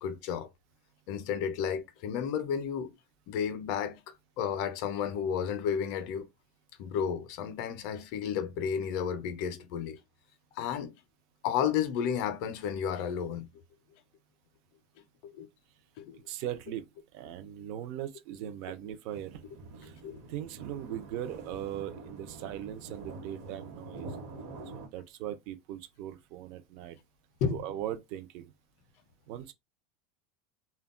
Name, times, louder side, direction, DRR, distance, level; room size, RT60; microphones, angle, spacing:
voice 1, 0.0-0.5 1.1-2.9 3.3-4.0 4.4-6.3 6.8-10.0 10.6-10.9 11.4-13.5 15.2-15.5 16.0-16.2 19.8-20.2 27.4-27.6, left 8 dB, 45° left, 0.5 m, -32 dB
voice 2, 16.3-16.8 17.1-19.4 19.8-20.0 20.3-24.1 24.9-27.0 27.5-28.5 29.3-29.5, right 11 dB, 45° right, 0.4 m, -39 dB
sound 1, 19.1-24.9, right 3 dB, 60° right, 1.0 m, -46 dB
2.2 x 2.1 x 3.6 m
supercardioid pair, 175°, 0 cm